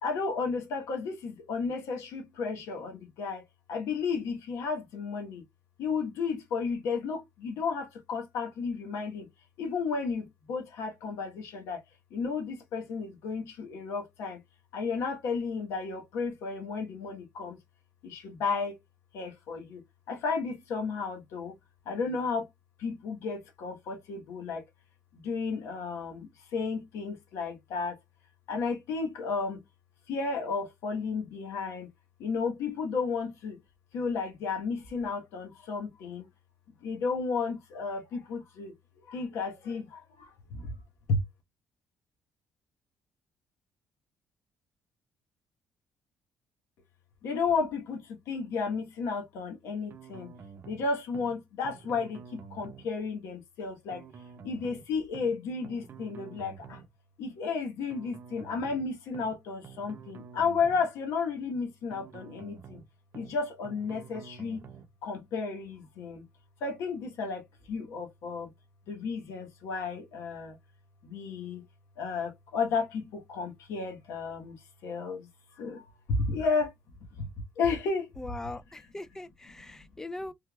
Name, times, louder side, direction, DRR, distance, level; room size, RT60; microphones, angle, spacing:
voice 1, 0.0-3.4 3.7-5.4 5.8-9.3 9.6-11.8 12.1-14.4 14.7-17.6 18.0-18.8 19.1-19.8 20.1-21.5 21.8-22.5 22.8-24.6 25.2-28.0 28.5-29.6 30.1-31.9 32.2-33.6 33.9-36.3 36.8-38.7 39.1-40.7 41.1-41.2 47.2-50.3 50.6-54.0 54.4-56.8 57.2-62.8 63.1-64.6 65.0-66.2 66.6-68.5 68.9-70.6 71.0-71.6 72.0-75.3 75.6-76.7 77.1-77.3 77.6-78.1, left 4 dB, 80° left, 1.2 m, -33 dB
sound 1, 49.9-50.8 51.1-51.4 51.6-52.9 53.9-54.8 55.1-55.4 55.6-56.9 57.9-58.8 59.1-59.4 59.6-60.9 61.9-62.8 63.1-63.4 63.6-64.9, right 6 dB, 50° right, 0.6 m, -48 dB
voice 2, 78.2-80.3, left 2 dB, 10° left, 0.4 m, -40 dB
3.4 x 2.9 x 2.3 m
cardioid pair, 95°, 5 cm